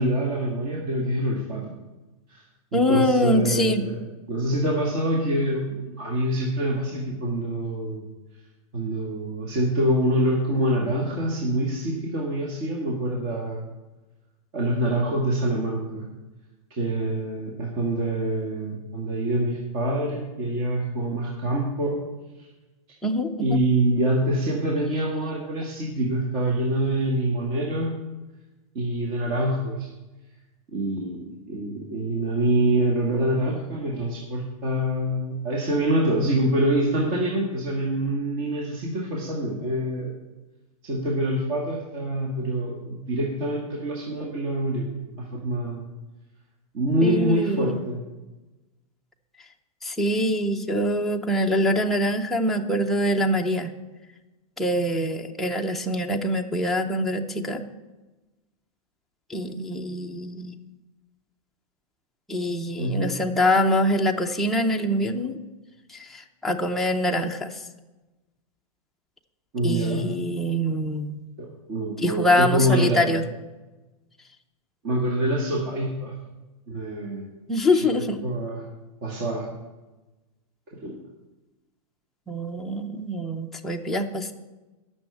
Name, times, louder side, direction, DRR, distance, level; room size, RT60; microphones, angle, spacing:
voice 1, 0.0-1.6 2.3-2.4 2.7-4.0 4.3-8.0 8.7-13.7 14.5-16.1 16.8-22.0 22.4-22.5 23.4-27.9 28.8-29.9 30.7-40.1 40.8-45.9 46.7-48.0 62.8-63.2 69.5-70.1 71.4-73.2 74.8-76.1 76.7-77.3 77.7-78.6 79.0-79.5 80.7-80.9, right 1 dB, 35° right, -2 dB, 1.6 m, -25 dB
voice 2, 2.7-3.8 23.0-23.6 47.0-47.8 49.8-53.7 54.6-57.6 59.3-60.6 62.3-65.4 65.9-67.6 69.6-71.3 72.0-73.2 77.5-78.2 82.3-84.3, left 1 dB, ahead, 0 dB, 0.5 m, -24 dB
10.0 x 6.3 x 7.9 m, 1.1 s
supercardioid pair, 160°, 19 cm